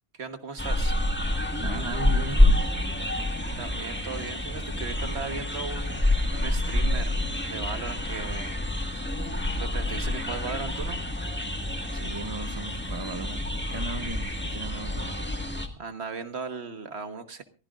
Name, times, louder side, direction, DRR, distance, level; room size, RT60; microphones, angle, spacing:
voice 1, 0.1-1.0 3.6-6.1 6.3-7.2 7.5-8.6 9.6-11.0 15.8-17.4, right 5 dB, 65° right, 9 dB, 1.6 m, -37 dB
sound 1, 0.6-15.7, left 1 dB, 10° left, 1.7 m, -27 dB
voice 2, 1.6-2.7 11.9-15.2, right 3 dB, 25° right, 11 dB, 0.8 m, -37 dB
24.0 x 15.5 x 2.5 m, 0.35 s
omnidirectional pair, 1.2 m